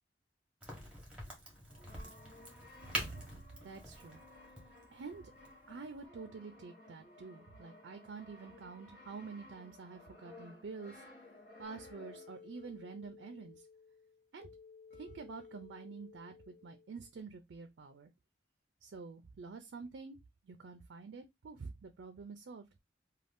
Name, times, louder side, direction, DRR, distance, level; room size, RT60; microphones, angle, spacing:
Crack, 0.6-6.1, right 1 dB, 5° right, 1.0 m, -45 dB
Brass instrument, 1.7-12.5, left 2 dB, 60° left, 1.0 m, -57 dB
voice 1, 2.9-4.2 4.9-5.3 5.7-11.0 11.6-13.7 14.3-14.5 14.9-18.1 18.8-20.2 20.4-22.6, right 4 dB, 90° right, 0.4 m, -48 dB
sound 1, 11.6-17.2, left 5 dB, 40° left, 0.7 m, -56 dB
2.5 x 2.3 x 3.4 m
head